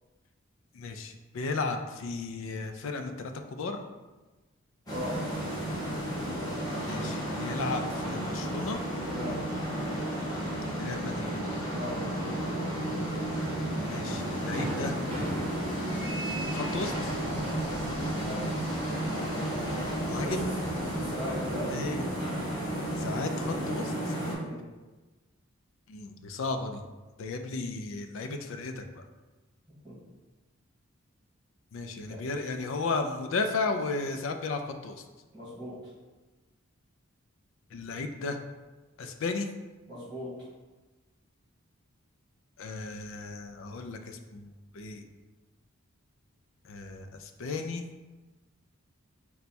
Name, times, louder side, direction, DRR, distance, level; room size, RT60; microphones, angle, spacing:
voice 1, 0.7-3.8 6.8-8.8 10.8-11.4 13.8-15.0 16.5-17.1 20.1-20.5 21.7-22.1 22.9-24.2 25.9-26.8 27.2-29.0 31.7-35.0 37.7-38.4 39.0-39.5 42.6-45.0 46.6-47.8, left 3 dB, 70° left, 6 dB, 0.4 m, -34 dB
voice 2, 4.8-5.2 9.1-9.3 11.7-12.0 18.2-18.4 20.1-20.3 20.9-21.7 23.8-24.0 24.3-24.6 29.8-29.9 32.1-32.3 35.3-35.8 39.9-40.3, left 1 dB, ahead, -12 dB, 1.4 m, -39 dB
sound 1, 4.9-24.3, right 1 dB, 20° left, 0.9 m, -32 dB
Fireworks, 13.5-13.6 14.0-14.1 14.5-18.3 18.6-19.5, equal, 30° right, 0.6 m, -41 dB
4.1 x 2.2 x 4.2 m, 1.2 s
head